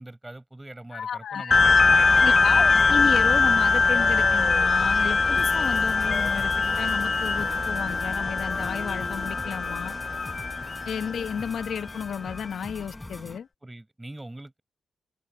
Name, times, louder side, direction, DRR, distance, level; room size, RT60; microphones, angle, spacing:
voice 1, 0.0-2.9 11.0-11.2 13.6-14.6, right 1 dB, 15° right, 4.8 m, -43 dB
voice 2, 0.9-1.6 2.2-9.9 10.8-13.5, left 7 dB, 75° left, 1.2 m, -32 dB
sound 1, 1.5-12.4, left 4 dB, 40° left, 0.5 m, -22 dB
sound 2, 3.1-10.2, right 5 dB, 50° right, 3.7 m, -47 dB
sound 3, 5.4-13.4, left 1 dB, 15° left, 3.6 m, -43 dB
open air
cardioid pair, 70°, 0 cm